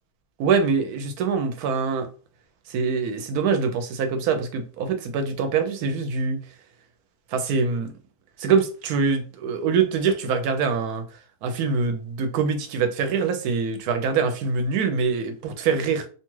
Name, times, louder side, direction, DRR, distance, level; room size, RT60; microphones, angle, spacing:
voice 1, 0.4-2.1 2.7-6.4 7.3-7.9 8.4-11.0 11.4-16.1, right 5 dB, 85° right, 1.1 m, -24 dB
2.7 x 2.3 x 3.0 m
omnidirectional pair, 1.6 m